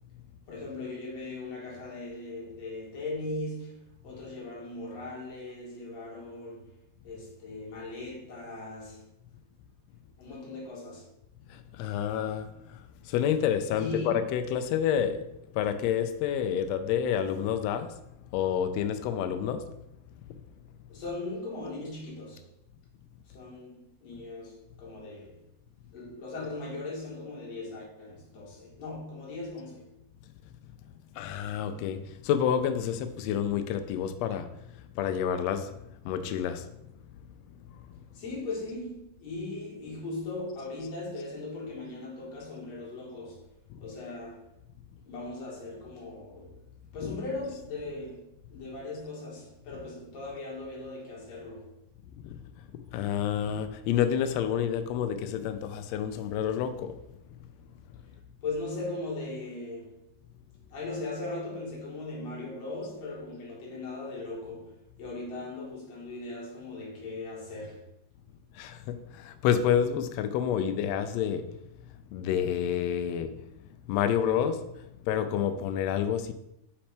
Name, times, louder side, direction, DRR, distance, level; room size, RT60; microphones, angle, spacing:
voice 1, 0.5-6.8 7.0-9.1 10.2-11.1 13.7-14.2 20.9-22.5 23.3-25.4 25.9-30.0 38.1-43.5 43.8-44.5 45.0-46.6 46.9-51.7 58.4-60.1 60.7-67.9, left 2 dB, 60° left, 2.6 m, -39 dB
voice 2, 11.5-18.0 18.3-19.7 31.1-36.7 37.7-38.0 43.7-43.9 47.0-47.2 52.2-52.4 52.9-57.0 68.5-71.6 72.1-73.5 73.9-76.3, left 9 dB, 90° left, 1.5 m, -29 dB
5.7 x 5.4 x 3.3 m
omnidirectional pair, 3.5 m